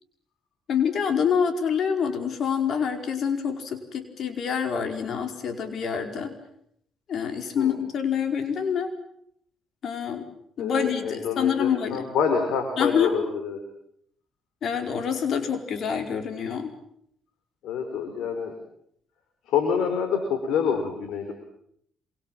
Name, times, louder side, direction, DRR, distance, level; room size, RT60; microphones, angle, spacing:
voice 1, 0.7-6.4 7.1-8.9 9.8-10.2 10.6-12.1 12.8-13.1 14.6-16.7, left 7 dB, 60° left, 6 dB, 4.8 m, -26 dB
voice 2, 10.6-13.6 17.6-18.5 19.5-21.3, left 6 dB, 85° left, 5 dB, 4.7 m, -27 dB
27.0 x 25.5 x 7.6 m, 0.70 s
cardioid pair, 90°, 0 cm